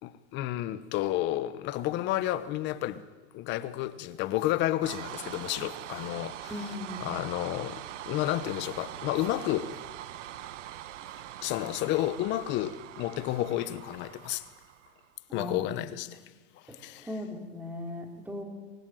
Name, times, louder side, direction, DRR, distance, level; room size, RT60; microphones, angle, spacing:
voice 1, 0.0-3.1 3.3-6.7 7.0-9.8 11.4-14.5 15.3-16.2 16.6-17.1, left 14 dB, 30° left, 1.1 m, -31 dB
sound 1, 4.8-15.1, right 12 dB, 70° right, 1.4 m, -43 dB
voice 2, 6.5-7.0 15.3-15.9 16.7-18.4, left 1 dB, 5° right, 3.4 m, -38 dB
23.0 x 16.5 x 9.2 m
supercardioid pair, 155°, 38 cm